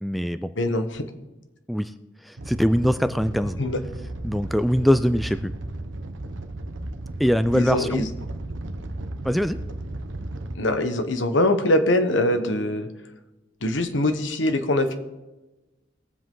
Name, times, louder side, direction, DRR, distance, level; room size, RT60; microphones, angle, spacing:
voice 1, 0.0-0.5 1.7-1.9 2.3-3.6 4.2-5.5 7.2-8.1 9.2-9.6, equal, ahead, 12 dB, 0.3 m, -22 dB
voice 2, 0.6-1.0 3.6-3.8 7.5-8.1 10.5-12.9 13.6-14.9, left 1 dB, 75° left, 8 dB, 1.2 m, -23 dB
Animal, 2.4-10.5, right 1 dB, 80° right, 0.9 m, -35 dB
21.0 x 7.6 x 3.8 m, 1.1 s
head